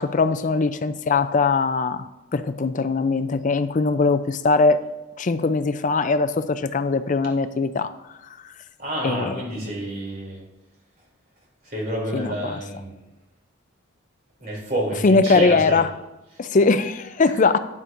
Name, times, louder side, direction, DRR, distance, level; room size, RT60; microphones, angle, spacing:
voice 1, 0.0-2.0 2.3-4.8 5.2-7.9 9.0-9.4 12.1-12.6 15.0-15.9 16.4-17.6, left 4 dB, 40° left, 12 dB, 0.4 m, -21 dB
voice 2, 8.8-10.4 11.6-12.9 14.4-15.8, right 1 dB, 45° right, -2 dB, 3.0 m, -29 dB
11.0 x 9.7 x 2.6 m, 0.99 s
head